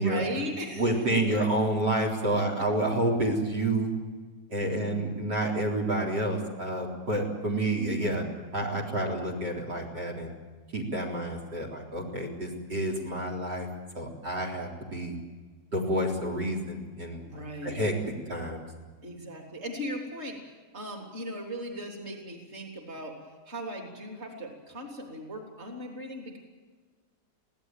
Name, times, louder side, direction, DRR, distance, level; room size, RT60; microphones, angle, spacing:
voice 1, 0.0-1.2 4.6-5.1 17.2-17.8 19.0-20.4 20.7-26.4, right 1 dB, 35° right, 3 dB, 3.7 m, -38 dB
voice 2, 0.8-3.9 4.5-8.3 8.5-10.3 10.7-13.7 13.9-15.1 15.7-17.2 17.6-17.9 18.3-18.6, right 1 dB, 75° right, 4 dB, 4.6 m, -29 dB
24.0 x 17.0 x 9.1 m, 1.4 s
omnidirectional pair, 1.8 m